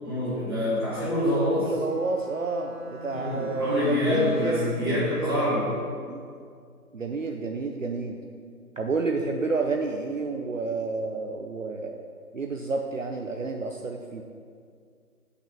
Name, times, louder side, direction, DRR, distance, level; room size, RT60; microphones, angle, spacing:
voice 1, 0.0-1.7 3.1-5.7, left 1 dB, 15° right, -11 dB, 1.9 m, -26 dB
Bowed string instrument, 1.5-4.9, equal, 30° right, 1.0 m, -41 dB
voice 2, 1.6-5.4 6.1-6.2 6.9-8.2 8.8-12.0 12.3-14.2, right 3 dB, 55° right, 2 dB, 0.6 m, -30 dB
6.2 x 5.4 x 6.9 m, 2.2 s
figure-of-eight pair, 175°, 46 cm